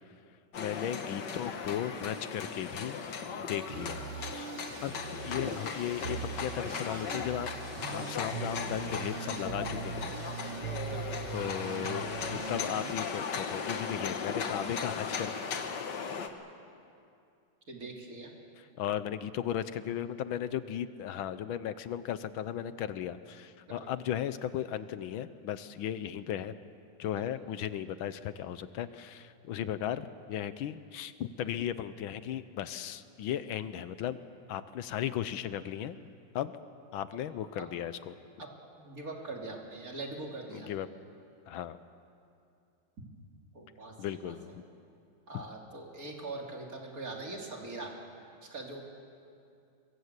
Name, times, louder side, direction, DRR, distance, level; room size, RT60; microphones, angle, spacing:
sound 1, 0.5-16.3, left 6 dB, 60° left, 1.9 m, -37 dB
voice 1, 0.6-3.0 3.4-4.5 4.8-4.9 5.2-7.5 7.9-10.1 11.3-15.3 18.6-26.5 27.0-34.2 34.5-36.0 36.3-36.6 36.9-38.2 40.5-40.9 41.5-41.8 44.0-44.6 45.3-45.4, left 10 dB, 80° left, 13 dB, 1.6 m, -36 dB
sound 2, 3.7-12.9, right 11 dB, 85° right, 1.6 m, -41 dB
voice 2, 17.7-18.3 23.7-23.8 37.6-37.7 38.4-38.5 38.8-40.7 43.5-44.3 45.3-47.9 48.5-48.8, right 2 dB, 45° right, 0 dB, 3.3 m, -42 dB
23.5 x 21.5 x 8.2 m, 2.5 s
omnidirectional pair, 2.2 m